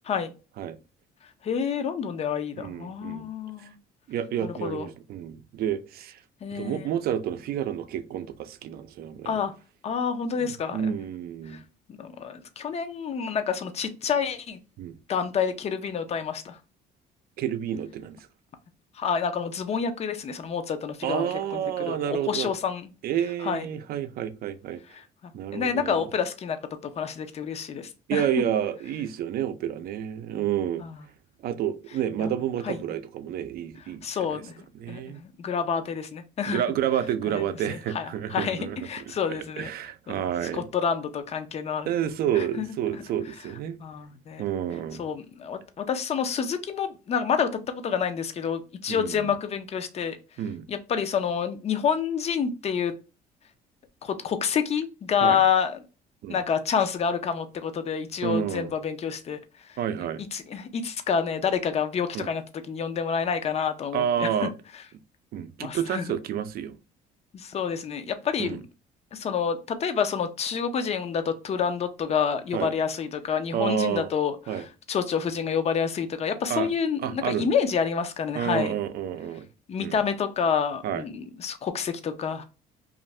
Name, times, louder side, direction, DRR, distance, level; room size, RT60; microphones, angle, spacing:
voice 1, 1.4-3.7 4.4-4.9 6.4-6.9 9.3-9.5 9.8-11.0 11.5-11.6 12.0-14.6 15.1-16.6 19.0-22.9 23.4-23.7 25.2-26.6 26.8-28.3 30.8-31.0 32.2-32.3 32.6-32.8 34.0-36.6 37.3-37.4 37.7-39.7 40.1-40.2 40.5-41.9 42.3-43.0 43.8-44.4 45.0-50.2 50.7-52.9 54.0-55.8 56.3-59.4 59.7-59.8 60.3-64.5 65.6-66.1 67.3-68.6 69.1-78.8 79.7-82.4, left 7 dB, 40° left, 0.5 m, -28 dB
voice 2, 2.6-3.3 4.1-6.2 6.5-9.4 10.4-11.6 14.8-15.0 17.4-18.2 21.0-22.5 23.0-24.8 25.3-26.1 28.1-30.8 31.4-34.4 34.7-35.2 36.5-38.8 39.6-40.7 41.9-43.8 44.4-45.0 48.9-49.3 50.4-50.7 55.2-55.4 56.2-56.4 58.2-58.7 59.8-60.2 62.1-62.3 63.9-64.5 65.3-66.7 68.4-68.6 72.5-72.7 73.5-74.1 74.5-74.6 76.5-76.7 77.0-77.5 78.3-79.5 79.8-80.0 80.8-81.0, right 10 dB, 65° right, 0.5 m, -29 dB
2.6 x 2.5 x 3.1 m
cardioid pair, 110°, 17 cm